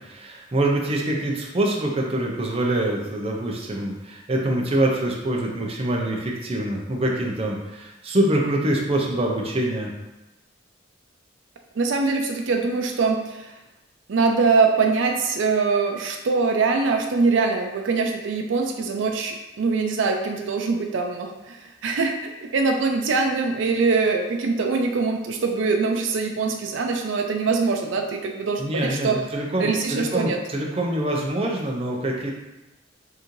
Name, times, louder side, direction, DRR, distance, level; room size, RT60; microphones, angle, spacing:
voice 1, 0.0-9.9 28.6-32.3, right 1 dB, 30° right, -1 dB, 0.6 m, -25 dB
voice 2, 11.8-13.5 14.1-29.2 29.6-30.4, right 4 dB, 85° right, 4 dB, 0.4 m, -23 dB
4.7 x 2.6 x 3.1 m, 1.0 s
head